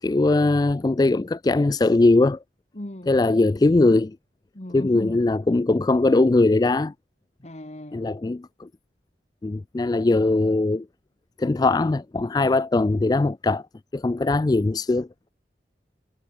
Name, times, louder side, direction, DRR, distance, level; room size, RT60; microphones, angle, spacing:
voice 1, 0.0-2.4 3.1-4.2 4.7-6.9 7.9-8.7 9.4-10.9 11.4-13.6 13.9-15.1, left 2 dB, 20° left, 0.3 m, -20 dB
voice 2, 2.7-3.2 4.5-5.2 7.4-8.2, left 1 dB, 40° left, 1.6 m, -36 dB
head